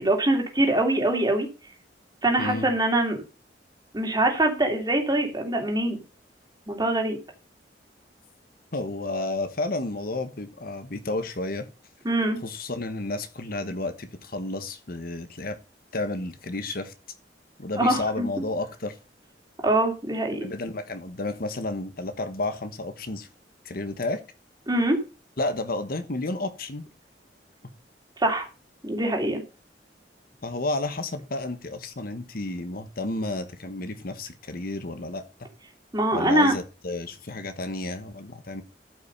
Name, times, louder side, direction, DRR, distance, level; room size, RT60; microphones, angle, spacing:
voice 1, 0.0-1.5 2.2-3.2 3.9-6.0 6.7-7.2 12.0-12.4 17.8-18.3 19.6-20.4 24.7-25.0 28.2-28.5 28.8-29.4 35.9-36.5, right 1 dB, 25° right, 2.8 m, -23 dB
voice 2, 8.7-11.7 12.4-15.6 15.9-16.9 17.6-19.0 20.3-23.3 23.6-24.2 25.4-26.8 30.4-35.2 36.1-38.6, left 2 dB, 55° left, 1.2 m, -31 dB
13.0 x 5.7 x 5.4 m
head